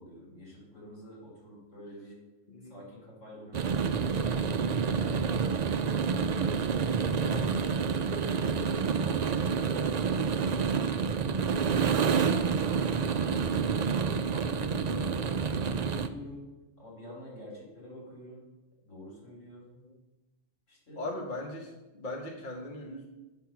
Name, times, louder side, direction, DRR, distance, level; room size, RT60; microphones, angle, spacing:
voice 1, 0.0-2.2 2.7-4.3 4.9-6.5 7.1-8.0 8.3-10.6 14.2-16.5 16.8-18.4 18.8-19.7 20.7-21.0, equal, 85° left, -4 dB, 4.1 m, -46 dB
voice 2, 2.5-2.8 19.7-20.0 21.0-23.1, left 1 dB, 40° left, 1 dB, 1.3 m, -39 dB
sound 1, 3.5-16.1, right 6 dB, 55° right, 0.4 m, -28 dB
9.0 x 6.4 x 5.8 m, 1.1 s
omnidirectional pair, 1.3 m